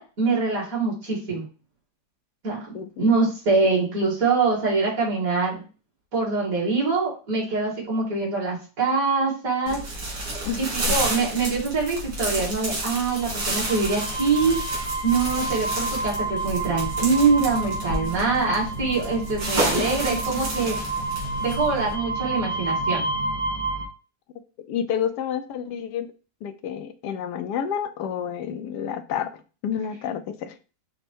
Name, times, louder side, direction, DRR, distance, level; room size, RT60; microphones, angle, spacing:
voice 1, 0.0-1.4 2.4-5.6 6.1-9.8 10.6-14.6 15.0-20.8 21.4-23.0, right 4 dB, 55° right, -4 dB, 2.3 m, -24 dB
voice 2, 2.7-3.1 10.4-10.6 19.7-19.8 24.7-26.1 26.4-29.3 29.6-30.5, left 8 dB, 80° left, 9 dB, 1.2 m, -29 dB
sound 1, 9.7-21.9, right 1 dB, 90° right, 2.3 m, -30 dB
sound 2, 12.8-23.9, right 2 dB, 25° right, 1.0 m, -30 dB
5.2 x 2.1 x 4.5 m, 0.34 s
omnidirectional pair, 1.8 m